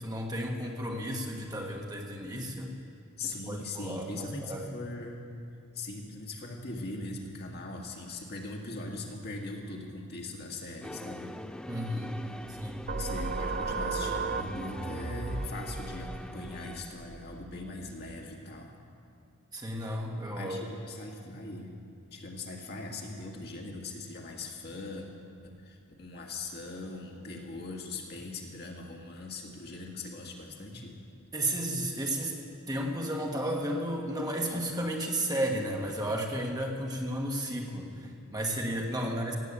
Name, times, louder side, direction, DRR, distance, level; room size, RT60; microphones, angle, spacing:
voice 1, 0.0-2.7 3.2-4.7 11.7-12.1 12.5-12.9 19.5-20.6 31.3-32.4 32.7-39.4, right 1 dB, 20° right, 0 dB, 1.5 m, -33 dB
voice 2, 3.2-5.2 5.7-11.3 12.2-12.4 13.0-18.7 20.3-21.7 22.1-25.1 25.4-30.9, left 2 dB, 50° left, 0 dB, 1.9 m, -40 dB
sound 1, 10.8-17.4, equal, 5° left, 0.3 m, -43 dB
sound 2, 12.9-18.1, right 4 dB, 45° right, 0.6 m, -36 dB
17.0 x 8.4 x 8.2 m, 2.4 s
head